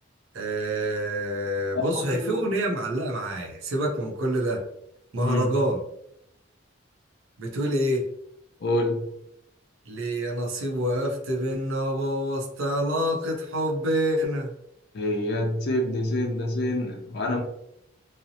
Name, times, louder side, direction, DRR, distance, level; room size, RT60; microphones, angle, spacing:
voice 1, 0.3-4.6 5.1-5.8 7.4-8.0 9.9-14.5, right 1 dB, 75° right, -1 dB, 0.5 m, -27 dB
voice 2, 1.7-2.5 5.2-5.5 8.6-9.0 14.9-17.4, left 1 dB, 50° left, 1 dB, 0.4 m, -27 dB
2.6 x 2.0 x 2.6 m, 0.76 s
head